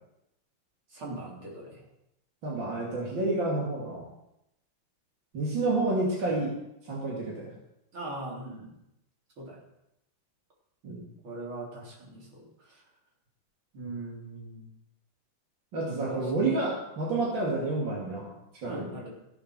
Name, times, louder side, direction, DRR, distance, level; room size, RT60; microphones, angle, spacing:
voice 1, 0.9-1.8 7.9-8.8 9.4-9.6 11.2-12.8 13.7-14.7 15.8-16.6 18.6-19.1, right 2 dB, 85° right, -3 dB, 4.3 m, -40 dB
voice 2, 2.4-4.0 5.3-6.5 6.9-7.5 10.8-11.0 15.7-18.3 18.6-18.9, right 2 dB, 65° right, -4 dB, 3.5 m, -29 dB
14.5 x 8.3 x 6.3 m, 0.83 s
omnidirectional pair, 2.2 m